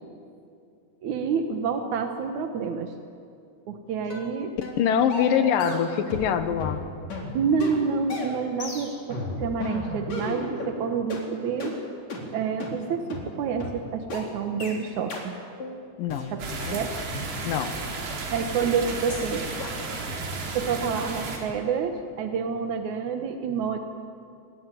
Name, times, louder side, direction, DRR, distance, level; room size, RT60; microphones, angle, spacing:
voice 1, 1.0-2.9 3.7-4.5 7.3-11.7 12.3-15.4 16.3-16.4 16.7-16.9 18.3-19.5 20.5-23.8, right 6 dB, 65° right, 5 dB, 2.0 m, -28 dB
sound 1, 4.1-4.3 4.6-4.8 5.1-6.3 6.6-10.7 11.1-11.2 11.6-11.7 12.1-12.2 12.6-12.7 13.1-13.2 13.6-13.7 14.1-14.2 14.6-14.8 15.1-15.3 15.6-15.8 16.1-17.3 17.6-17.7 18.1-18.2 18.6-18.8 19.1-19.3 19.6-19.8, left 2 dB, 40° left, 5.0 m, -34 dB
voice 2, 4.8-6.8 16.0-16.3 16.7-16.8 17.4-17.7, left 8 dB, 65° left, 9 dB, 2.5 m, -24 dB
sound 2, 16.4-21.4, right 3 dB, 85° right, 6.0 m, -33 dB
28.5 x 21.5 x 9.2 m, 2.5 s
omnidirectional pair, 4.9 m